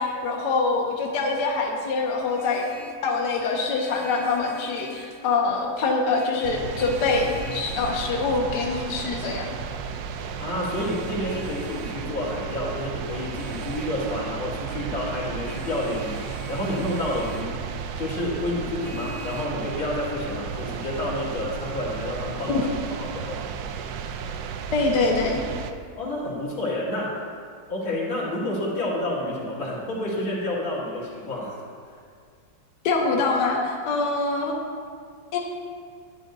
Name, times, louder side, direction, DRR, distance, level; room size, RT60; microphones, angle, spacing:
voice 1, 0.0-2.8 3.0-9.5 22.5-22.7 24.7-25.4 32.8-34.6 35.3-35.4, left 3 dB, 65° left, -1 dB, 1.3 m, -24 dB
Vehicle horn car horn honking, 2.3-3.1 3.7-5.2 6.1-8.1 10.7-12.1 13.3-14.0 15.4-17.6 18.8-19.5, left 3 dB, 30° left, 0.8 m, -44 dB
sound 1, 6.4-25.7, right 6 dB, 80° right, 0.8 m, -34 dB
voice 2, 10.4-17.6 18.0-22.6 23.0-23.5 26.0-27.2 27.7-31.6 31.9-32.0, left 1 dB, 80° left, -7 dB, 2.9 m, -29 dB
11.5 x 9.1 x 2.7 m, 2.1 s
omnidirectional pair, 2.2 m